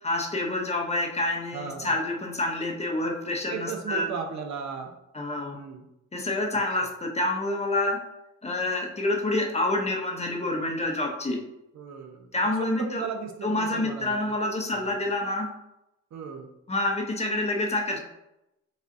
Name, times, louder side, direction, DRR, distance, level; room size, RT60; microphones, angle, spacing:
voice 1, 0.0-4.1 5.1-5.6 6.1-8.0 8.4-11.4 12.3-13.0 13.4-15.5 16.7-18.0, left 2 dB, 20° left, 2 dB, 0.8 m, -27 dB
voice 2, 1.5-1.9 3.5-4.9 5.5-5.8 6.5-6.6 11.7-12.3 12.6-14.3 14.7-14.9 16.1-16.5, right 6 dB, 65° right, 4 dB, 0.7 m, -36 dB
6.3 x 2.4 x 2.6 m, 0.89 s
cardioid pair, 90°, 30 cm